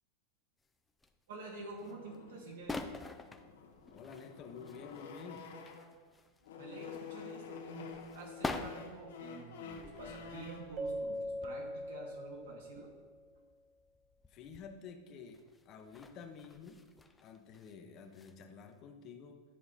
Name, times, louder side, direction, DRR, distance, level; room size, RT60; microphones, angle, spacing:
sound 1, 0.6-1.2 1.6-2.2 2.4-6.5 6.8-14.7 15.3-17.8 18.0-18.4 18.7-18.8, left 2 dB, 10° left, 0.4 m, -48 dB
voice 1, 1.3-2.9 6.6-7.9 8.1-12.9, right 2 dB, 80° right, -1 dB, 2.3 m, -48 dB
sound 2, 1.8-6.0 6.4-10.7, left 6 dB, 85° left, 1.1 m, -49 dB
voice 2, 3.9-5.5 14.3-15.4 15.6-16.8 17.2-19.4, left 6 dB, 35° left, 5 dB, 0.9 m, -50 dB
Keyboard (musical), 10.8-13.2, equal, 35° right, 0.6 m, -41 dB
10.0 x 4.6 x 4.2 m, 1.5 s
supercardioid pair, 145°, 0 cm